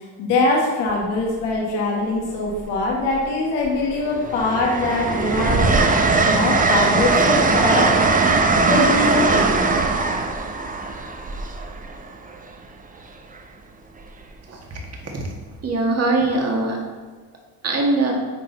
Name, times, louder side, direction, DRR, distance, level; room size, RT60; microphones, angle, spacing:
voice 1, 0.2-5.9 6.2-8.1 8.7-9.5, left 2 dB, 85° left, -2 dB, 1.6 m, -22 dB
Train, 0.9-1.2 2.5-3.2 3.6-12.4 14.0-14.2, right 3 dB, 20° right, 0.6 m, -20 dB
voice 2, 15.6-16.8 17.6-18.1, right 2 dB, 35° right, 0 dB, 1.7 m, -21 dB
9.9 x 4.0 x 3.9 m, 1.4 s
cardioid pair, 105°, 41 cm